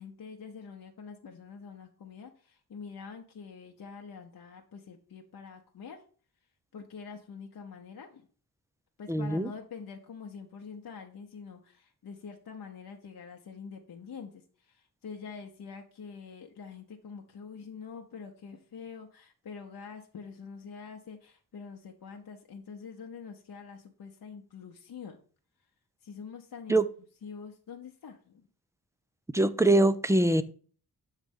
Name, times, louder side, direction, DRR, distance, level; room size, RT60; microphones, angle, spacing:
voice 1, 0.0-6.0 6.7-8.3 9.0-25.2 26.0-26.8 27.2-28.5, left 5 dB, 60° left, 0.8 m, -45 dB
voice 2, 9.1-9.5 26.7-26.9 29.3-30.4, right 2 dB, 10° right, 0.4 m, -23 dB
7.3 x 3.3 x 5.3 m
wide cardioid pair, 90°, 39 cm